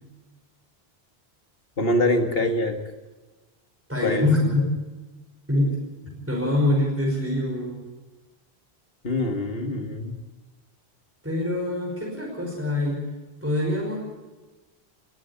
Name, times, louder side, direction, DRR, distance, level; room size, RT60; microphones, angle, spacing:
voice 1, 1.8-2.8 4.0-4.3 9.0-10.1, left 1 dB, 65° left, 5 dB, 2.2 m, -24 dB
voice 2, 3.9-4.7 5.5-5.8 6.3-7.8 11.2-13.0 13.4-14.0, left 1 dB, 10° right, -2 dB, 5.4 m, -24 dB
20.5 x 15.0 x 8.6 m, 1.2 s
omnidirectional pair, 1.1 m